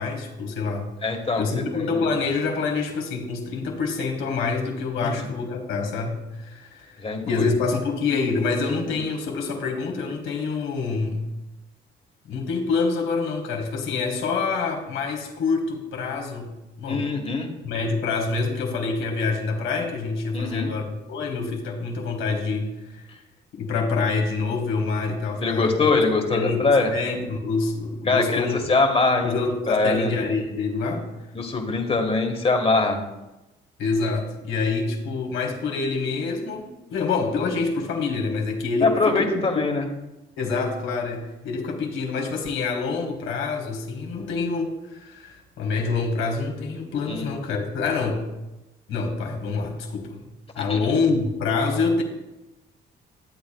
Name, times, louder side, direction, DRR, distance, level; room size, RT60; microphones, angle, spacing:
voice 1, 0.0-11.3 12.3-16.5 16.8-17.1 17.6-23.1 23.5-25.9 26.3-28.6 29.2-31.0 33.8-39.7 40.4-48.2 48.9-50.2 50.6-52.0, left 4 dB, 85° left, 2 dB, 1.8 m, -26 dB
voice 2, 1.0-2.3 5.0-5.3 7.0-7.5 16.9-17.5 20.3-20.7 25.4-26.9 28.1-29.3 29.7-30.1 31.3-33.0 38.8-39.9 47.1-47.3 50.6-50.8, left 3 dB, 30° left, 3 dB, 1.6 m, -23 dB
11.5 x 8.5 x 2.3 m, 1.0 s
cardioid pair, 90°, 20 cm